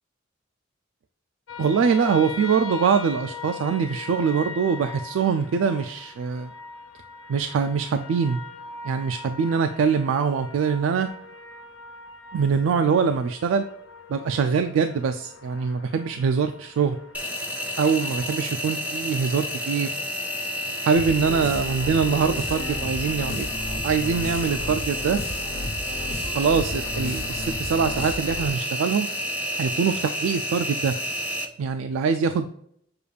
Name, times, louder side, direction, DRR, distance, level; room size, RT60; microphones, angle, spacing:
sound 1, 1.5-18.5, left 4 dB, 80° left, 0.6 m, -41 dB
voice 1, 1.6-6.5 7.3-8.4 8.8-11.1 12.3-13.6 14.1-17.0 17.8-19.9 20.8-23.5 23.8-25.2 26.3-29.1 29.6-30.9 31.6-32.5, right 6 dB, 80° right, 8 dB, 0.3 m, -23 dB
Engine, 17.1-31.4, equal, 5° right, 0.5 m, -30 dB
sound 2, 21.0-28.6, left 1 dB, 55° left, 0.9 m, -33 dB
6.7 x 2.3 x 3.3 m, 0.66 s
head